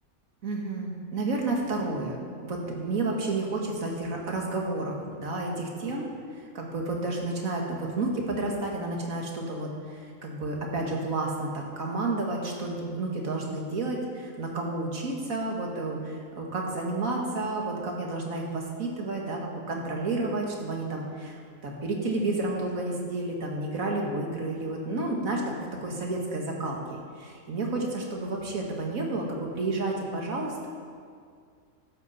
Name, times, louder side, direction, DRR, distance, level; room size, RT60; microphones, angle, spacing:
voice 1, 0.4-25.4 25.8-30.7, right 2 dB, 80° right, 0 dB, 2.1 m, -31 dB
13.5 x 11.0 x 4.2 m, 2.1 s
omnidirectional pair, 1.4 m